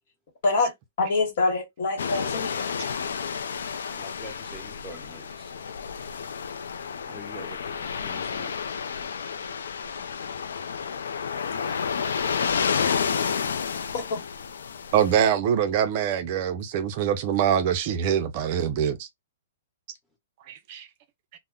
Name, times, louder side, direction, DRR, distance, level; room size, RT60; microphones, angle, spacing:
voice 1, 0.4-2.7 13.9-14.2, left 3 dB, 60° left, 1.2 m, -26 dB
sound 1, 2.0-15.3, left 6 dB, 85° left, 0.4 m, -30 dB
voice 2, 3.9-5.5 7.1-8.5 11.7-11.8, left 1 dB, ahead, 0.9 m, -44 dB
voice 3, 14.9-19.1 20.5-20.9, right 9 dB, 40° right, 0.4 m, -24 dB
2.1 x 2.0 x 3.6 m
hypercardioid pair, 155°, 0 cm